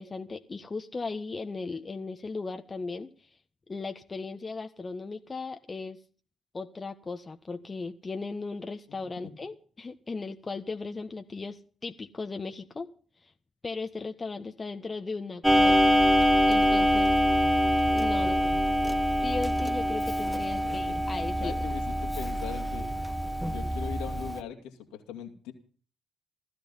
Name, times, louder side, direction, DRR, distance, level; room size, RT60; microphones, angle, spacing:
voice 1, 0.0-3.1 3.7-6.0 6.5-12.9 13.2-13.3 13.6-15.8 16.5-17.1 17.9-18.5 19.2-21.6, left 3 dB, 35° left, 6 dB, 1.4 m, -37 dB
Clock, 15.4-24.4, equal, ahead, 1.4 m, -25 dB
voice 2, 18.2-19.0 20.6-21.0 21.4-22.9 23.4-25.5, left 8 dB, 75° left, 4 dB, 2.5 m, -41 dB
16.5 x 14.0 x 5.6 m, 0.41 s
hypercardioid pair, 45°, 0 cm